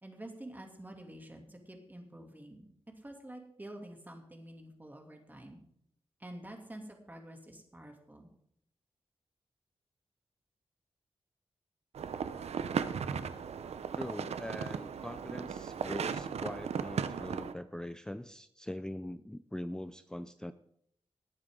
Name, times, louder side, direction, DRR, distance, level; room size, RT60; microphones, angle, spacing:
voice 1, 0.0-2.7 3.0-5.6 6.2-8.3 13.1-13.2, right 1 dB, 15° right, 3 dB, 2.7 m, -48 dB
sound 1, 11.9-17.5, right 7 dB, 90° right, 0.7 m, -36 dB
voice 2, 13.9-20.5, left 1 dB, 5° left, 11 dB, 0.5 m, -42 dB
19.5 x 8.7 x 3.8 m, 0.70 s
wide cardioid pair, 85°, 11 cm